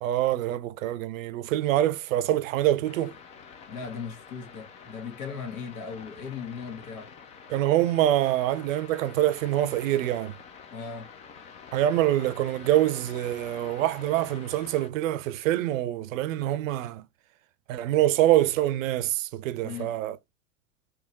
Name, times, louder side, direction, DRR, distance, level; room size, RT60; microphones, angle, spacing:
voice 1, 0.0-3.1 7.5-10.3 11.7-17.0 17.7-20.2, right 13 dB, 60° right, 0.6 m, -25 dB
sound 1, 2.8-14.9, left 6 dB, 15° left, 0.3 m, -47 dB
voice 2, 3.7-7.1 10.7-11.1 19.6-20.0, left 6 dB, 65° left, 1.8 m, -38 dB
3.5 x 3.0 x 2.9 m
hypercardioid pair, 100°, 46 cm